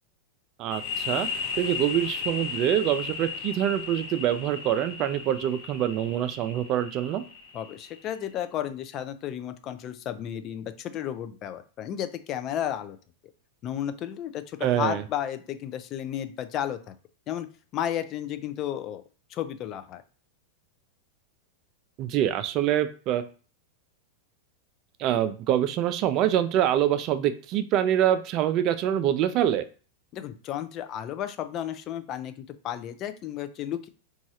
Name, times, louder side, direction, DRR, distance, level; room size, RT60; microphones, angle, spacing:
voice 1, 0.6-1.3 1.6-7.2 14.6-15.0 22.0-23.2 25.0-29.7, right 11 dB, 45° right, 11 dB, 0.3 m, -25 dB
sound 1, 0.7-8.2, left 5 dB, 55° left, 0.8 m, -35 dB
voice 2, 7.5-13.0 13.6-16.9 17.3-17.5 17.7-19.0 19.3-20.0 30.1-33.9, left 10 dB, 40° left, 10 dB, 0.3 m, -33 dB
3.0 x 2.3 x 2.7 m, 0.38 s
hypercardioid pair, 100°, 0 cm